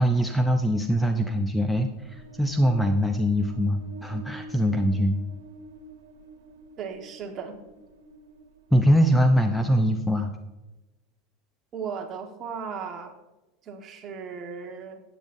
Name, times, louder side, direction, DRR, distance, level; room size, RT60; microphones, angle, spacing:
voice 1, 0.0-5.2 8.7-10.3, equal, 5° left, 6 dB, 0.6 m, -22 dB
sound 1, 1.8-9.4, right 3 dB, 90° right, 1.3 m, -46 dB
voice 2, 6.8-7.6 11.7-13.1 13.6-15.0, right 6 dB, 35° right, 3 dB, 1.5 m, -36 dB
13.5 x 9.5 x 2.7 m, 1.1 s
supercardioid pair, 130°, 0 cm